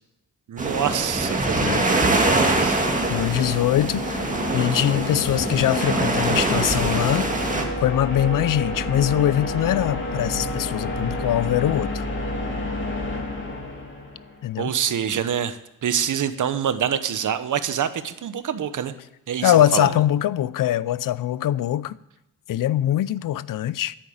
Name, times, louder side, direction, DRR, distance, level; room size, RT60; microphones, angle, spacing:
voice 1, 0.5-2.8 14.6-19.0 19.3-19.9, right 8 dB, 70° right, 1.0 m, -26 dB
sound 1, 0.6-7.6, right 2 dB, 25° right, 2.1 m, -23 dB
sound 2, 1.7-14.5, left 2 dB, 35° left, 3.0 m, -30 dB
voice 2, 3.1-4.3 4.5-7.3 7.8-12.1 14.4-14.7 19.4-22.0 22.5-24.0, left 12 dB, 80° left, 0.6 m, -22 dB
10.5 x 8.9 x 8.6 m
cardioid pair, 90°, 33 cm